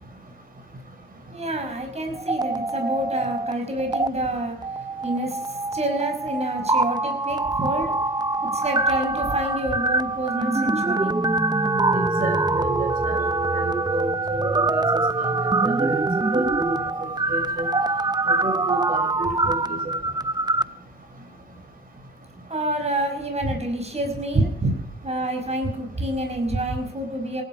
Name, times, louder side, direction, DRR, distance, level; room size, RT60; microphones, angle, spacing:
voice 1, 1.3-4.6 5.0-5.4 5.7-7.9 8.5-11.1 22.5-24.5 25.0-27.4, right 1 dB, 40° right, 3 dB, 5.6 m, -28 dB
sound 1, 2.1-3.5 3.8-4.1 4.6-20.6, right 2 dB, 25° right, 0.9 m, -24 dB
voice 2, 11.9-13.2 13.5-15.3 15.6-16.0 16.3-16.8 17.3-17.7 18.4-19.8 24.3-24.7, right 2 dB, 55° right, 4 dB, 5.7 m, -28 dB
19.0 x 12.0 x 6.1 m, 0.77 s
supercardioid pair, 45°, 18 cm